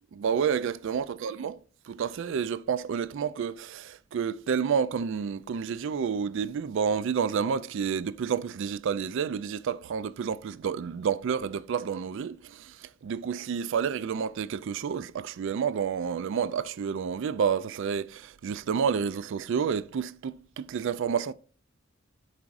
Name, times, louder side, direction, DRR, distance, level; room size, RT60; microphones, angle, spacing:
voice 1, 0.1-1.5 1.9-12.8 13.0-21.3, right 7 dB, 65° right, 0.4 m, -29 dB
11.0 x 4.7 x 2.5 m
head